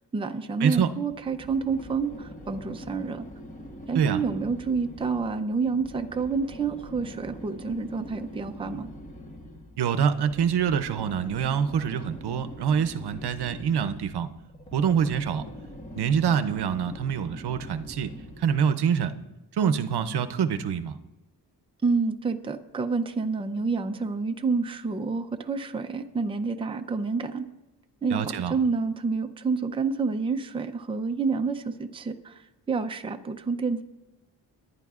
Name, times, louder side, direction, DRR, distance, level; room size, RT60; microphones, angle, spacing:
voice 1, 0.1-3.2 3.9-8.9 21.8-27.4 28.0-33.8, right 4 dB, 15° right, 7 dB, 0.5 m, -28 dB
sound 1, 1.1-18.7, equal, 20° left, 1.1 m, -43 dB
voice 2, 9.8-14.3 14.7-15.5 15.9-18.1 18.4-19.1 19.6-21.0 28.1-28.5, right 7 dB, 75° right, 11 dB, 0.7 m, -25 dB
27.5 x 11.0 x 2.4 m, 1.0 s
wide cardioid pair, 175°, 40 cm